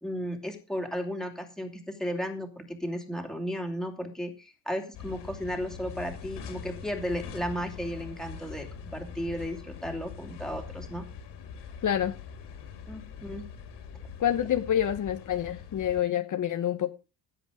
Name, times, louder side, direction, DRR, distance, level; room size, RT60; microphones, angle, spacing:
voice 1, 0.0-11.0 12.9-13.5, equal, ahead, 2.8 m, -34 dB
sound 1, 4.9-16.0, left 6 dB, 85° left, 4.1 m, -43 dB
voice 2, 11.8-12.2 14.2-16.9, left 10 dB, 45° left, 1.0 m, -27 dB
16.0 x 8.1 x 5.1 m
cardioid pair, 135°, 41 cm